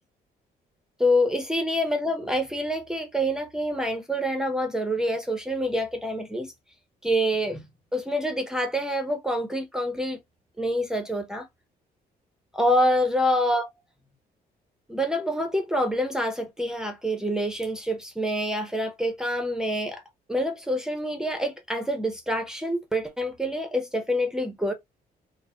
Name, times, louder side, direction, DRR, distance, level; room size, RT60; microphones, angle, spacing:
voice 1, 1.0-6.5 7.0-7.6 7.9-10.2 10.6-11.5 12.5-13.7 14.9-20.0 20.3-24.7, equal, 5° right, 0.6 m, -26 dB
3.9 x 2.0 x 3.8 m
cardioid pair, 155°, 16 cm